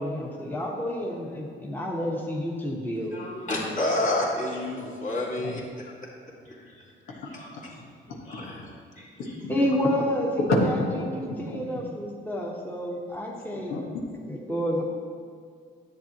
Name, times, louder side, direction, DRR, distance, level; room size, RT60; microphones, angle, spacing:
voice 1, 0.0-3.2 9.5-13.7 14.3-14.8, equal, 10° left, -2 dB, 1.3 m, -29 dB
voice 2, 3.1-5.8 6.5-6.7 7.1-7.8 8.3-8.7 9.0-9.4, left 1 dB, 40° left, -4 dB, 2.3 m, -30 dB
voice 3, 9.2-9.5 11.5-11.6 13.7-14.0, left 4 dB, 90° left, -3 dB, 1.5 m, -36 dB
10.5 x 8.3 x 3.0 m, 2.2 s
cardioid pair, 90°, 20 cm